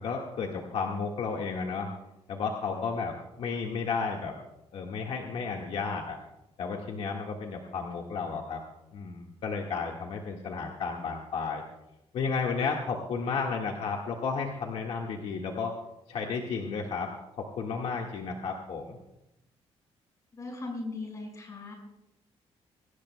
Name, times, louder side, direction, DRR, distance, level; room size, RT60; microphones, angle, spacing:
voice 1, 0.0-1.9 2.3-4.4 4.7-6.2 6.6-8.6 8.9-11.6 12.1-15.7 16.1-19.0, left 5 dB, 65° left, 0 dB, 1.7 m, -33 dB
voice 2, 20.3-21.7, left 3 dB, 30° left, 1 dB, 5.3 m, -38 dB
22.5 x 18.5 x 2.2 m, 0.87 s
cardioid pair, 150°, 11 cm